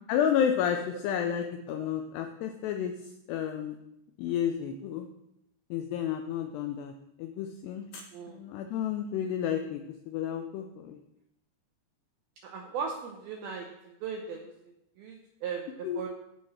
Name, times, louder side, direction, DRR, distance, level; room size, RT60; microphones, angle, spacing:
voice 1, 0.1-2.9 3.3-3.8 4.2-5.1 5.7-6.9 7.2-11.0 15.8-16.0, left 9 dB, 90° left, 5 dB, 2.3 m, -31 dB
voice 2, 8.1-8.4 12.4-14.5 15.0-16.1, right 6 dB, 85° right, 2 dB, 2.1 m, -38 dB
14.0 x 4.8 x 4.2 m, 0.84 s
omnidirectional pair, 5.4 m